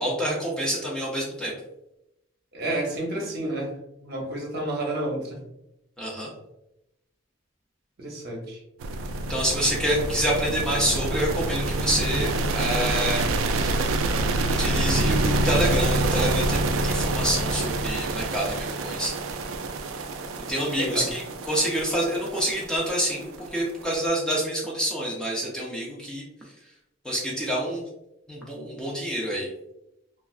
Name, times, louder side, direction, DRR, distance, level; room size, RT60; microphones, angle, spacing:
voice 1, 0.0-1.5 6.0-6.3 9.3-13.3 13.6-13.9 14.6-19.1 20.5-26.2 27.0-27.9 28.3-29.5, equal, 5° left, -4 dB, 0.5 m, -27 dB
voice 2, 2.5-5.4 8.0-8.6 20.8-21.1, right 1 dB, 50° right, -1 dB, 0.7 m, -30 dB
sound 1, 8.8-23.9, right 2 dB, 80° right, 0.3 m, -26 dB
3.2 x 2.4 x 2.4 m, 0.86 s
head